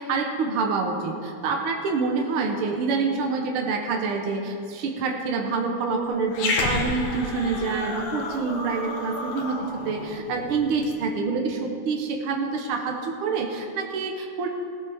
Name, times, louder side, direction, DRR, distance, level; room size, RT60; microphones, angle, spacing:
voice 1, 0.0-14.5, right 4 dB, 75° right, 1 dB, 1.2 m, -27 dB
Growling, 6.3-10.9, left 2 dB, 70° left, 2.9 m, -31 dB
17.0 x 13.0 x 3.5 m, 2.4 s
omnidirectional pair, 3.9 m